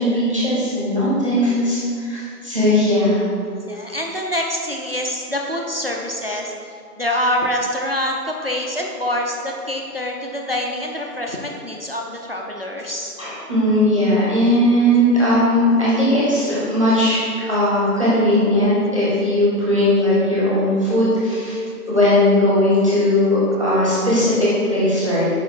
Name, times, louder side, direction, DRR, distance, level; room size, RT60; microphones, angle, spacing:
voice 1, 0.0-3.2 13.2-17.2 17.5-21.6 21.9-25.4, left 1 dB, 20° right, -9 dB, 1.0 m, -18 dB
voice 2, 3.7-6.5 7.0-13.1, left 1 dB, 40° right, 0 dB, 0.5 m, -25 dB
5.0 x 4.9 x 4.5 m, 2.3 s
figure-of-eight pair, 165°, 47 cm